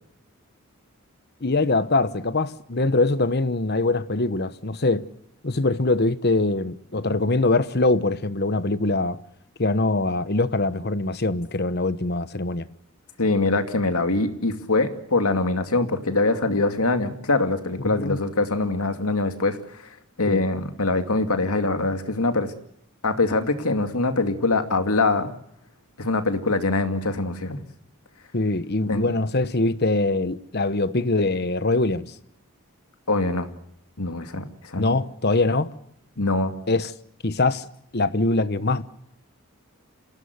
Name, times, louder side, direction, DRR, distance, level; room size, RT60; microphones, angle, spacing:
voice 1, 1.4-5.0 5.4-9.2 9.6-12.7 17.8-18.2 20.3-20.4 28.3-32.1 34.7-35.7 36.7-36.9 37.2-37.7 37.9-38.8, left 2 dB, 45° left, 1.1 m, -23 dB
voice 2, 13.2-19.6 20.2-22.5 23.0-25.3 26.0-27.6 28.9-29.1 33.1-33.5 34.0-34.9 36.2-36.5, left 2 dB, 80° left, 2.4 m, -23 dB
27.5 x 17.0 x 8.1 m
head